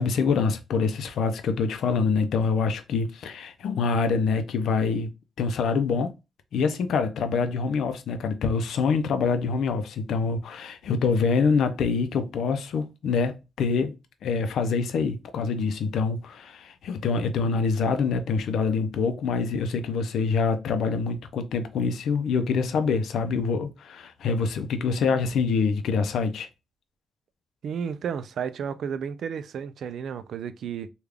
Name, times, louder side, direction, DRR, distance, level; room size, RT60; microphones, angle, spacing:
voice 1, 0.0-5.1 5.4-6.1 6.5-13.9 14.2-26.5, left 5 dB, 75° left, 0.5 m, -25 dB
voice 2, 27.6-30.9, right 7 dB, 70° right, 0.4 m, -32 dB
3.4 x 2.3 x 3.4 m
cardioid pair, 115°, 0 cm